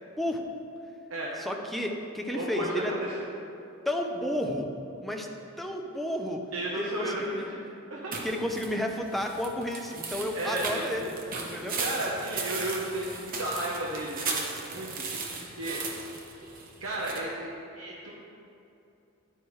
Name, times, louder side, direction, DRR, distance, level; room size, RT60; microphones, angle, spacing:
voice 1, 1.4-2.9 3.9-4.7 5.0-5.3 5.6-6.4 6.8-7.5 8.2-11.8, left 1 dB, ahead, 1 dB, 0.6 m, -32 dB
voice 2, 2.3-3.2 6.5-7.4 7.9-8.2 10.3-10.9 11.8-15.8 16.8-18.1, right 1 dB, 80° right, -4 dB, 1.0 m, -33 dB
sound 1, 8.1-17.2, right 4 dB, 40° right, 1.0 m, -37 dB
10.5 x 9.0 x 3.2 m, 2.8 s
head